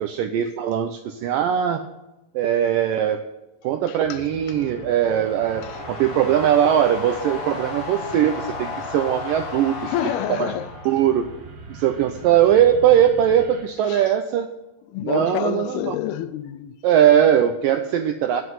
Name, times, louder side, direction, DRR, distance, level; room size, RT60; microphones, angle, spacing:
voice 1, 0.0-1.8 2.3-3.2 3.6-9.9 10.3-10.5 10.9-11.3 11.7-14.5 15.0-16.0 16.8-18.4, right 10 dB, 85° right, 1.9 m, -20 dB
voice 2, 3.9-4.3 5.6-5.8 9.8-10.7 13.9-14.1 14.9-16.7, left 12 dB, 80° left, 2.4 m, -28 dB
sound 1, 4.0-13.6, right 5 dB, 65° right, 4.0 m, -42 dB
sound 2, 4.3-11.4, left 4 dB, 50° left, 2.8 m, -34 dB
9.6 x 8.0 x 9.3 m
omnidirectional pair, 4.7 m